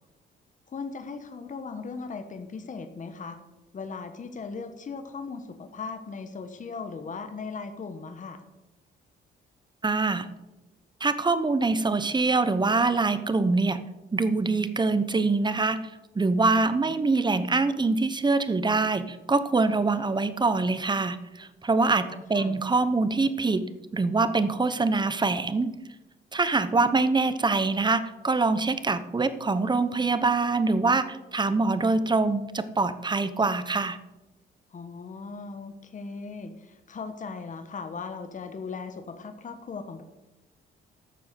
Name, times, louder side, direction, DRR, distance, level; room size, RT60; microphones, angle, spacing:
voice 1, 0.7-3.4 3.7-8.4 22.0-22.6 34.7-40.0, left 4 dB, 40° left, 8 dB, 1.3 m, -38 dB
voice 2, 9.8-10.3 11.0-13.8 14.1-15.8 16.1-22.0 22.3-23.6 23.9-25.7 26.3-34.0, right 3 dB, 20° right, 12 dB, 1.0 m, -24 dB
12.5 x 6.9 x 6.9 m, 1.0 s
cardioid pair, 90°, 20 cm